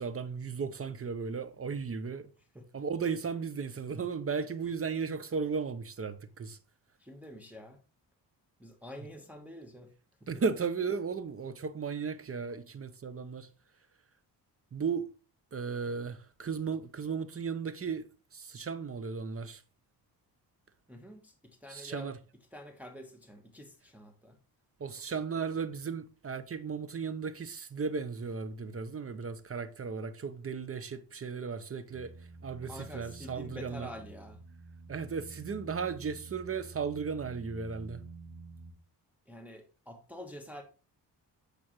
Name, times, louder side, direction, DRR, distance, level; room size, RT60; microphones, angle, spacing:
voice 1, 0.0-2.3 2.7-6.6 10.3-13.5 14.7-15.1 15.5-18.0 18.3-19.6 21.7-22.2 24.8-32.1 32.4-33.9 34.9-38.0, right 5 dB, 35° right, 0.8 m, -35 dB
voice 2, 7.0-7.8 8.6-9.9 20.9-22.1 22.5-24.4 32.6-34.4 39.3-40.6, left 1 dB, 5° right, 1.2 m, -47 dB
sound 1, 31.9-38.7, right 4 dB, 50° right, 2.0 m, -49 dB
8.5 x 5.0 x 3.1 m
cardioid pair, 70°, 42 cm